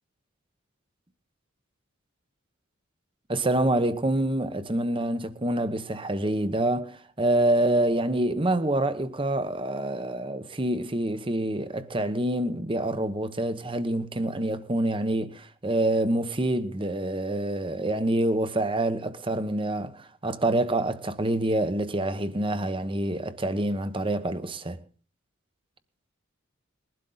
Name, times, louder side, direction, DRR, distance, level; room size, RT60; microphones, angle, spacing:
voice 1, 3.3-24.8, right 1 dB, 25° right, 1.0 m, -26 dB
21.0 x 12.0 x 3.9 m
head